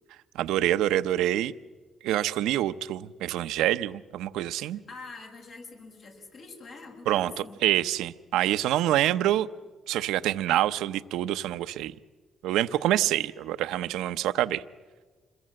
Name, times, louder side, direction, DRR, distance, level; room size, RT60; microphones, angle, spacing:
voice 1, 0.4-1.5 2.0-4.8 7.1-9.5 9.9-11.9 12.4-14.6, right 13 dB, 85° right, 13 dB, 0.7 m, -26 dB
voice 2, 4.6-7.6, left 3 dB, 70° left, 1 dB, 7.0 m, -45 dB
26.5 x 22.0 x 7.7 m, 1.4 s
supercardioid pair, 65°, 0 cm